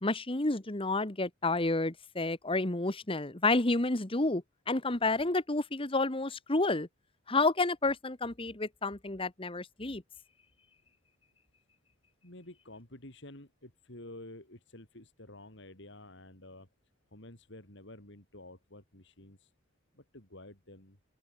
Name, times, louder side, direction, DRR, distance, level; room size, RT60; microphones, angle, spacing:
voice 1, 0.0-6.9 7.3-10.0, left 2 dB, 30° left, 1.4 m, -30 dB
voice 2, 12.2-16.7 17.1-19.5 19.9-21.0, left 1 dB, 65° left, 4.9 m, -50 dB
open air
head